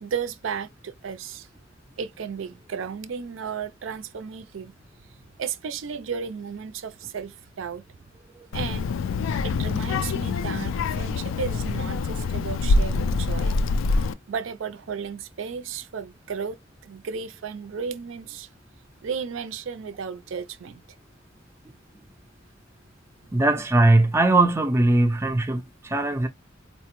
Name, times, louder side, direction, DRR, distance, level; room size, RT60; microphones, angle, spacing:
voice 1, 0.0-1.5 2.0-4.7 5.4-7.8 8.5-8.9 9.4-13.5 14.3-16.6 16.8-18.5 19.0-20.8, right 6 dB, 75° right, 0.4 m, -34 dB
Child speech kid speaking, 8.5-14.1, left 3 dB, 85° left, 0.3 m, -25 dB
voice 2, 23.3-26.3, right 2 dB, 15° right, 0.4 m, -20 dB
4.3 x 2.1 x 2.9 m
head